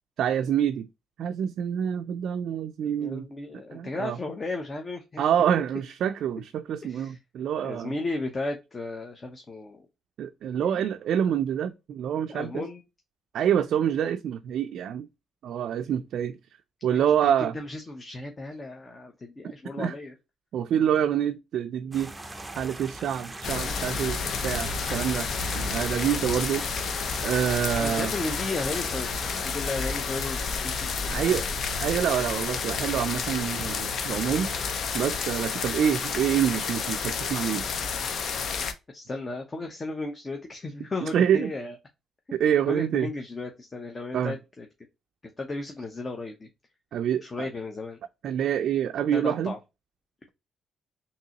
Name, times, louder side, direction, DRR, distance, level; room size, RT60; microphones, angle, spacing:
voice 1, 0.2-0.9 1.2-3.3 3.7-4.2 5.2-7.9 10.2-12.7 13.3-15.1 15.4-16.4 16.8-17.6 19.8-19.9 20.5-22.1 22.6-25.3 25.5-26.7 27.2-28.1 31.1-31.4 31.8-34.5 34.9-37.6 41.0-41.5 42.3-43.1 44.1-44.4 46.9-47.5 48.2-49.5, right 9 dB, 70° right, 0.3 m, -26 dB
voice 2, 3.0-5.2 6.8-7.2 7.6-9.9 10.6-10.8 12.3-12.8 16.9-20.1 27.8-29.1 29.4-31.2 38.9-41.7 42.7-44.7 45.4-46.5 47.2-48.0 49.1-49.6, left 2 dB, 30° left, 0.8 m, -35 dB
sound 1, 21.9-29.5, right 2 dB, 15° right, 0.5 m, -40 dB
sound 2, 23.4-38.7, left 5 dB, 60° left, 0.7 m, -30 dB
3.8 x 2.9 x 2.8 m
cardioid pair, 90°, 0 cm